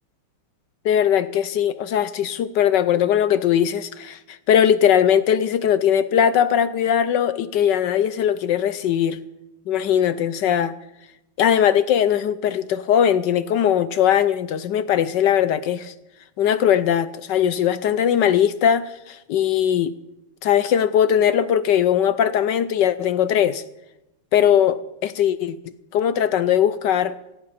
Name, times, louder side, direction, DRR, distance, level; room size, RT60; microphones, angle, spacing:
voice 1, 0.8-4.2 4.5-9.2 9.7-10.7 11.4-15.9 16.4-19.9 20.4-23.6 24.3-25.5 25.9-27.1, left 9 dB, 70° left, 14 dB, 1.1 m, -20 dB
17.0 x 16.5 x 4.2 m, 0.90 s
omnidirectional pair, 2.4 m